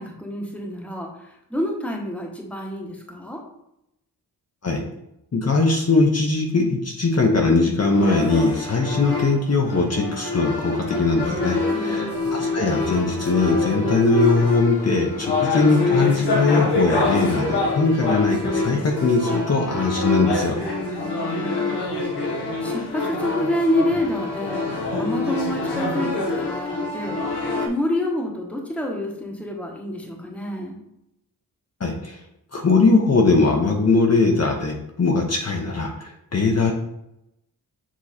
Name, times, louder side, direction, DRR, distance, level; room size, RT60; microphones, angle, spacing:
voice 1, 0.0-3.4 11.7-12.1 21.0-24.6 25.0-27.2 27.6-30.8, equal, 5° left, 0 dB, 1.1 m, -28 dB
voice 2, 5.3-20.6 31.8-32.2 32.5-36.7, left 3 dB, 40° left, 1 dB, 0.8 m, -20 dB
sound 1, 7.9-27.7, left 3 dB, 90° left, 1.2 m, -25 dB
7.4 x 3.1 x 4.2 m, 0.82 s
wide cardioid pair, 135°, 39 cm